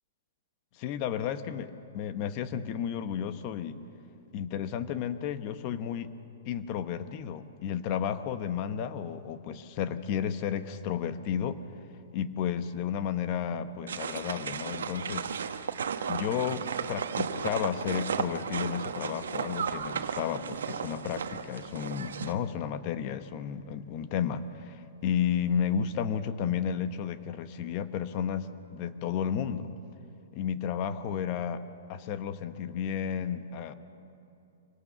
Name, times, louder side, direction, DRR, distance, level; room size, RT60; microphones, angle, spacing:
voice 1, 0.7-3.8 4.3-6.1 6.4-11.6 12.1-15.3 16.1-29.7 30.3-31.6 31.9-33.7, left 8 dB, 35° left, 11 dB, 1.0 m, -32 dB
sound 1, 13.9-22.3, right 7 dB, 90° right, 1.0 m, -34 dB
25.0 x 18.0 x 6.8 m, 2.7 s
hypercardioid pair, 155°, 0 cm